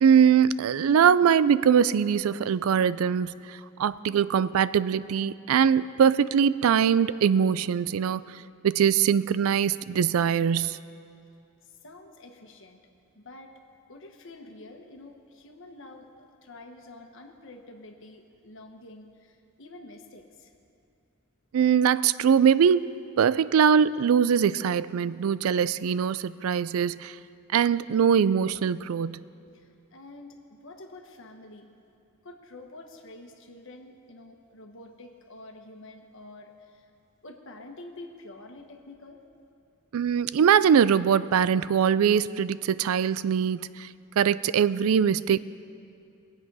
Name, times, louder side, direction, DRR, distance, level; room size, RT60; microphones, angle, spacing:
voice 1, 0.0-3.3 3.8-8.2 8.6-10.8 21.5-27.2 27.5-29.2 39.9-43.9 44.2-45.4, right 7 dB, 80° right, 17 dB, 0.4 m, -22 dB
voice 2, 11.6-12.8 13.1-13.5 13.9-20.5 29.5-31.7 32.2-36.9 37.2-39.2, left 2 dB, 65° left, 3 dB, 1.3 m, -47 dB
22.0 x 8.1 x 5.5 m, 2.5 s
head